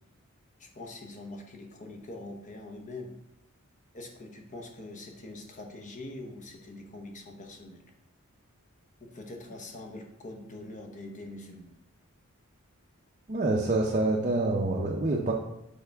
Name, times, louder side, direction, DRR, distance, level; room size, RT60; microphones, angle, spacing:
voice 1, 0.6-3.2 3.9-7.8 9.0-11.7, left 2 dB, 35° left, 3 dB, 1.0 m, -43 dB
voice 2, 13.3-15.3, right 2 dB, 35° right, -2 dB, 0.6 m, -26 dB
6.7 x 5.3 x 3.5 m, 0.86 s
head